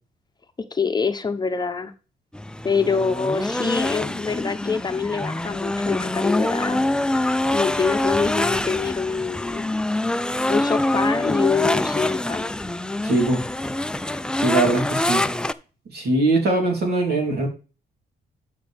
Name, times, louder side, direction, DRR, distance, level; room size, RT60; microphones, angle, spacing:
voice 1, 0.7-1.9 2.6-6.8 7.5-9.6 10.5-12.5, left 5 dB, 25° left, 7 dB, 0.8 m, -25 dB
sound 1, 2.3-15.5, left 1 dB, 5° left, 0.4 m, -25 dB
voice 2, 13.0-13.4 14.4-15.2 15.9-17.5, right 2 dB, 70° right, 0 dB, 3.3 m, -21 dB
12.5 x 5.1 x 3.5 m, 0.33 s
cardioid pair, 100°, 17 cm